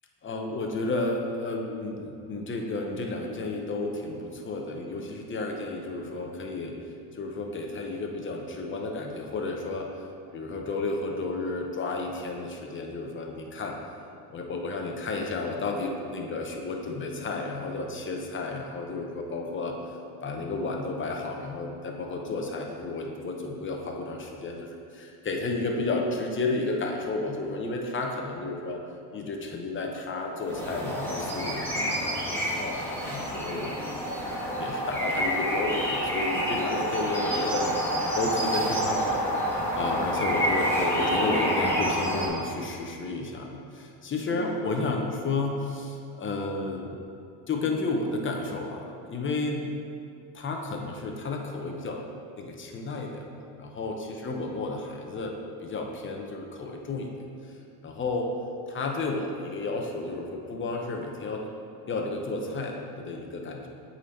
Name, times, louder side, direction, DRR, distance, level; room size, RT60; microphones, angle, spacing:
voice 1, 0.2-6.7 7.1-10.1 10.3-13.7 14.3-19.8 20.2-28.8 29.1-32.0 32.2-34.2 34.6-47.0 47.5-49.7 50.3-52.0 52.4-53.3 53.6-57.1 57.8-58.3 58.7-61.4 61.9-63.7, left 3 dB, 25° left, 1 dB, 0.9 m, -32 dB
sound 1, 30.4-42.3, equal, 5° left, 1.6 m, -28 dB
8.1 x 4.2 x 4.4 m, 2.5 s
cardioid pair, 105°, 44 cm